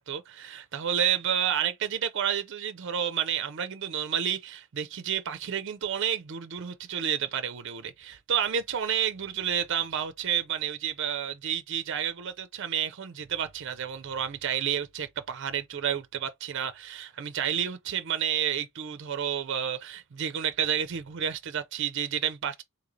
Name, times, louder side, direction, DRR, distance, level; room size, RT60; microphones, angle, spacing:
voice 1, 0.0-22.6, right 9 dB, 55° right, 0.4 m, -30 dB
3.1 x 2.7 x 3.8 m
head